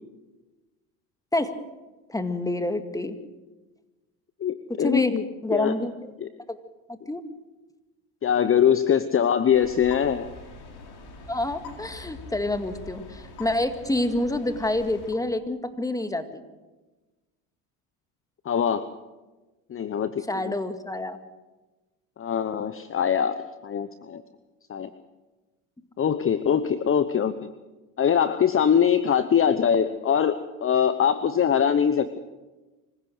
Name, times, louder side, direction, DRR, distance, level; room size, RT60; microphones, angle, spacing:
voice 1, 2.1-3.2 4.8-5.1 5.4-5.9 6.5-6.6 7.1-7.2 11.3-16.4 20.3-21.2, left 1 dB, 10° left, 8 dB, 2.1 m, -27 dB
voice 2, 4.4-5.2 5.5-5.7 6.2-6.3 8.2-10.3 18.4-18.9 19.7-20.5 22.2-24.2 24.7-24.9 26.0-27.3 28.0-32.2, left 8 dB, 30° left, 12 dB, 1.0 m, -23 dB
sound 1, 9.5-15.1, left 3 dB, 60° left, 4.6 m, -43 dB
25.5 x 16.0 x 6.5 m, 1.2 s
hypercardioid pair, 80°, 43 cm